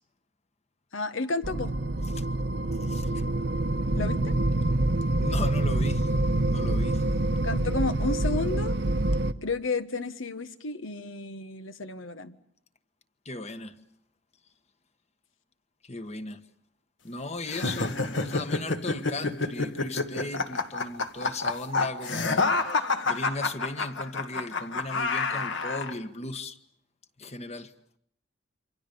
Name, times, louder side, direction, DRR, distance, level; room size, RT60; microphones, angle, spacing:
voice 1, 0.9-1.7 3.9-4.3 7.4-8.8 9.4-12.4, left 3 dB, 85° left, 1.5 m, -32 dB
sound 1, 1.4-9.3, right 2 dB, 55° right, 1.0 m, -26 dB
voice 2, 2.8-3.1 5.2-6.1 6.4-7.0 13.2-13.8 15.8-16.4 17.0-26.6 27.2-27.7, left 2 dB, 35° left, 1.3 m, -37 dB
sound 2, 17.5-25.9, left 3 dB, 65° left, 1.9 m, -28 dB
28.0 x 25.0 x 7.0 m
head